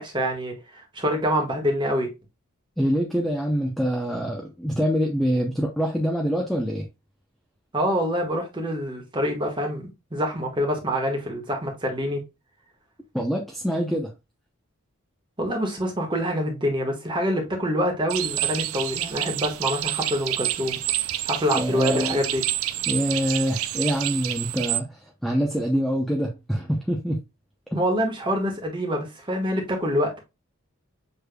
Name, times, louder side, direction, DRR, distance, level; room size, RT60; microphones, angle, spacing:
voice 1, 0.0-2.1 7.7-12.2 15.4-20.8 21.2-22.4 27.7-30.2, equal, 20° right, 1.2 m, -26 dB
voice 2, 2.8-6.8 13.1-14.1 21.5-22.2 22.9-27.2, equal, ahead, 0.6 m, -25 dB
sound 1, 18.1-24.8, right 14 dB, 75° right, 0.4 m, -28 dB
6.6 x 3.3 x 2.2 m
head